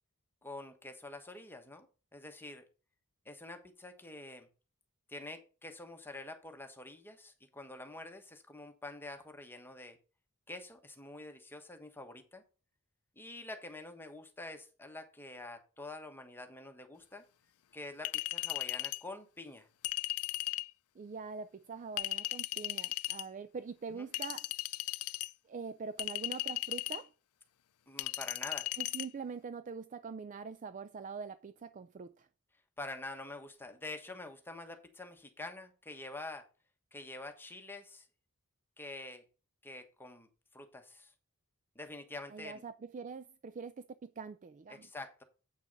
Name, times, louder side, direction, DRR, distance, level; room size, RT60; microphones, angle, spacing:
voice 1, 0.4-2.6 3.2-4.5 5.1-10.0 10.5-12.4 13.2-17.2 17.7-19.7 23.9-24.1 27.9-28.7 32.8-36.5 36.9-38.1 38.8-39.2 39.6-40.3 40.5-41.1 41.7-42.6 44.7-45.2, left 2 dB, 10° left, 1.2 m, -47 dB
Chink clink, 18.0-19.0 19.8-20.7 22.0-23.2 24.1-25.3 26.0-27.0 28.0-29.1, left 18 dB, 90° left, 0.5 m, -36 dB
voice 2, 21.0-24.5 25.5-27.1 28.8-32.3 42.3-44.9, right 5 dB, 35° right, 0.4 m, -44 dB
8.4 x 6.1 x 5.2 m
head